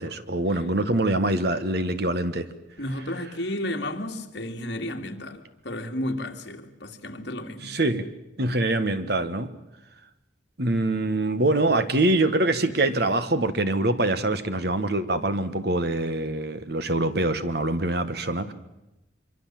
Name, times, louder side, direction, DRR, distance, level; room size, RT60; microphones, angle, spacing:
voice 1, 0.0-2.5 7.6-8.0 8.4-9.5 10.6-18.5, right 2 dB, 55° right, 1.4 m, -24 dB
voice 2, 2.8-7.8, left 1 dB, 60° left, 2.5 m, -32 dB
25.0 x 24.5 x 7.6 m
head